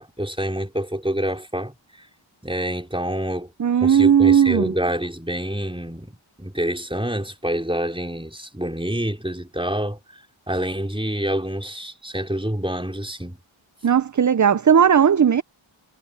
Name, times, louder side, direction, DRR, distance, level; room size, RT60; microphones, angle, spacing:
voice 1, 0.0-2.1 2.4-3.5 3.8-10.0 10.5-13.4, equal, 10° right, 4.4 m, -27 dB
voice 2, 3.6-4.7 13.8-15.4, right 8 dB, 40° right, 0.5 m, -16 dB
wide cardioid pair, 45°, 50 cm